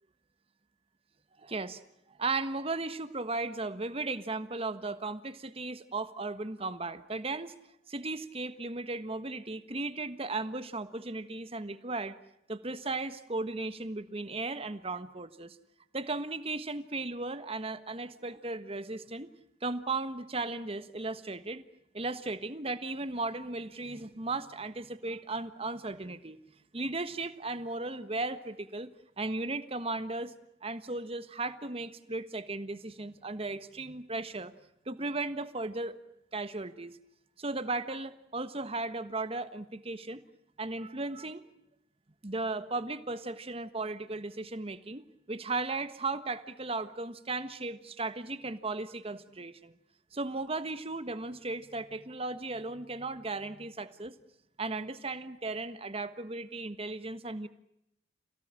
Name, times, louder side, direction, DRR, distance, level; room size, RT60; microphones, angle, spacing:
voice 1, 1.4-1.8 2.2-7.5 7.9-12.2 12.5-15.6 15.9-19.3 19.6-21.6 21.9-26.4 26.7-28.9 29.2-30.3 30.6-34.5 34.9-36.0 36.3-37.0 37.4-40.2 40.6-41.4 42.2-45.0 45.3-49.7 50.1-54.1 54.6-57.5, right 3 dB, 30° right, 12 dB, 1.4 m, -36 dB
28.5 x 17.5 x 8.9 m, 0.80 s
head